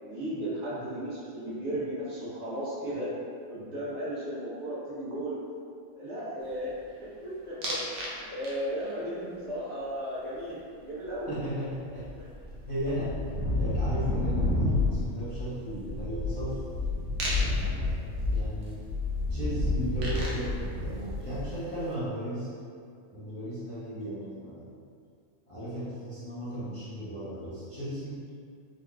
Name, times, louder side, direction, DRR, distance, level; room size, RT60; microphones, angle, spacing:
voice 1, 0.0-3.1 3.5-5.4 5.9-6.7 7.0-7.8 8.3-11.3, equal, 55° right, -10 dB, 1.3 m, -35 dB
sound 1, 7.6-8.1 8.4-8.9 11.4-11.5 11.7-21.7, left 2 dB, 90° right, 1.2 m, -30 dB
voice 2, 11.3-12.1 12.6-13.2 13.6-16.6 17.4-18.8 19.3-22.5 23.1-24.7 25.5-28.2, equal, 25° left, -13 dB, 0.9 m, -36 dB
3.9 x 3.5 x 2.3 m, 2.3 s
omnidirectional pair, 1.4 m